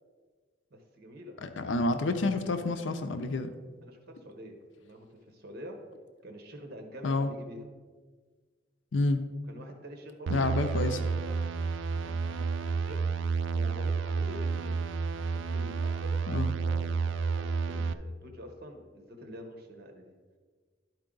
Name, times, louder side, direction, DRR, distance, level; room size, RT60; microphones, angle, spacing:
voice 1, 0.7-1.4 3.8-5.8 6.2-7.6 9.5-11.4 12.0-13.1 13.5-14.8 15.3-20.1, equal, 55° right, 3 dB, 1.1 m, -47 dB
voice 2, 1.4-3.5 7.0-7.3 8.9-9.2 10.3-11.0 16.3-16.5, left 2 dB, 80° left, 8 dB, 0.5 m, -29 dB
sound 1, 10.3-17.9, right 5 dB, 80° right, 0.4 m, -30 dB
11.5 x 4.6 x 3.8 m, 1.5 s
head